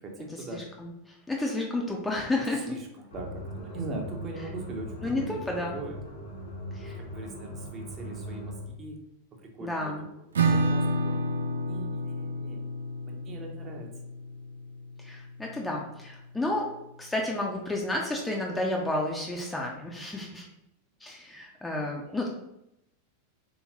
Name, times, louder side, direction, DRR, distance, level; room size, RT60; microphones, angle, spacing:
voice 1, 0.0-0.6 2.5-6.0 6.8-9.0 9.4-11.3 11.7-12.7 13.1-13.9 21.8-22.2, right 3 dB, 25° right, 1 dB, 0.7 m, -41 dB
voice 2, 0.5-2.8 5.0-5.8 6.7-7.0 9.6-10.0 15.0-20.5 21.0-22.3, left 2 dB, 10° left, -1 dB, 0.5 m, -31 dB
sound 1, 3.1-8.8, equal, 65° left, 0.8 m, -40 dB
Acoustic guitar / Strum, 10.3-15.8, right 1 dB, 70° right, 0.4 m, -30 dB
3.4 x 2.9 x 2.9 m, 0.85 s
figure-of-eight pair, 90°, 0 cm